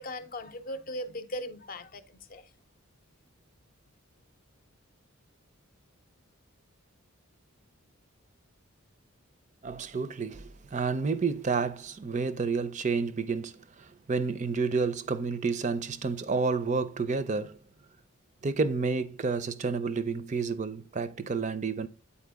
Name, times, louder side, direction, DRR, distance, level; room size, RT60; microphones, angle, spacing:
voice 1, 0.0-2.5, left 1 dB, 40° left, 0.5 m, -39 dB
voice 2, 9.6-17.6 18.4-21.9, right 4 dB, 35° right, 0.5 m, -30 dB
8.5 x 4.3 x 3.4 m
head